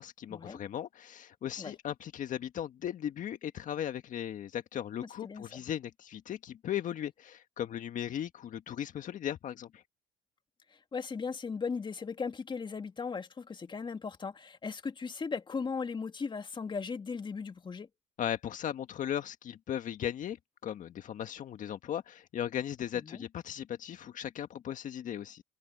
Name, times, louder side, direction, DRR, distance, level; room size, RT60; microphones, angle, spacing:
voice 1, 0.0-9.8 18.2-20.4 20.6-25.4, left 10 dB, 55° left, 1.7 m, -37 dB
voice 2, 5.0-5.4 10.9-17.9 23.0-23.2, left 5 dB, 30° left, 2.1 m, -37 dB
supercardioid pair, 75°, 16 cm